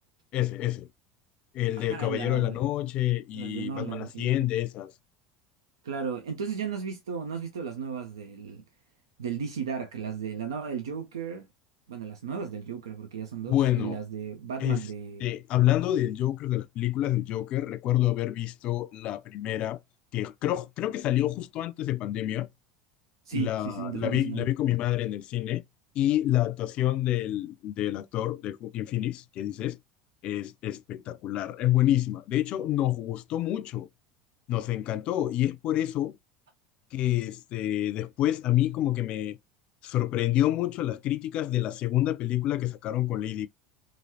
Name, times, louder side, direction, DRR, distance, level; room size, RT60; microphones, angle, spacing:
voice 1, 0.3-0.9 1.5-4.9 13.5-14.0 14.6-14.8 15.2-19.8 20.1-22.5 23.3-25.6 25.9-29.8 30.2-33.9 34.5-36.2 36.9-39.4 39.8-43.5, left 13 dB, 50° left, 0.3 m, -28 dB
voice 2, 1.8-2.6 3.3-4.5 5.8-8.6 9.2-11.5 11.9-15.3 23.2-24.5, right 7 dB, 85° right, 0.4 m, -35 dB
3.0 x 2.4 x 2.7 m
hypercardioid pair, 80°, 2 cm